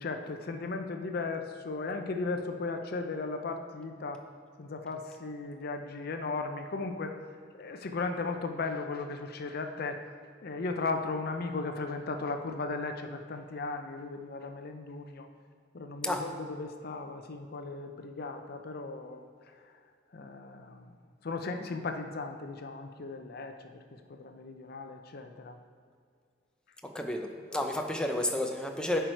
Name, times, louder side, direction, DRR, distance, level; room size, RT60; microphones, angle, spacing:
voice 1, 0.0-4.3 4.6-7.2 7.5-10.0 10.4-15.3 15.7-19.2 20.1-20.9 21.2-23.6 24.1-25.6, left 3 dB, 55° left, 6 dB, 0.6 m, -36 dB
voice 2, 26.9-29.0, left 1 dB, 5° left, 2 dB, 0.6 m, -31 dB
10.5 x 4.6 x 4.5 m, 2.1 s
head